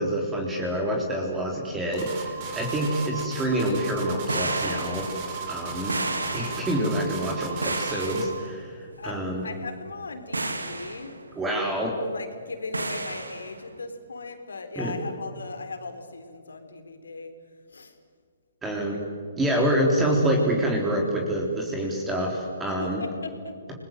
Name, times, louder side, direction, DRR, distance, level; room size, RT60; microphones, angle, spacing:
voice 1, 0.0-5.1 5.5-5.9 6.3-9.5 11.4-12.0 14.8-14.9 18.6-19.0 19.4-23.0, right 1 dB, 10° right, 0 dB, 3.9 m, -26 dB
sound 1, 1.9-8.4, right 5 dB, 35° right, 5.2 m, -36 dB
sound 2, 4.1-7.0 7.6-8.5 8.9-9.2 9.8-10.0 10.3-11.1 12.7-13.5, right 2 dB, 85° right, 2.6 m, -32 dB
voice 2, 9.0-11.1 12.0-17.3 17.7-17.9 22.8-23.5, left 3 dB, 75° left, 7 dB, 3.7 m, -38 dB
29.5 x 21.0 x 7.9 m, 2.1 s
figure-of-eight pair, 130°, 0 cm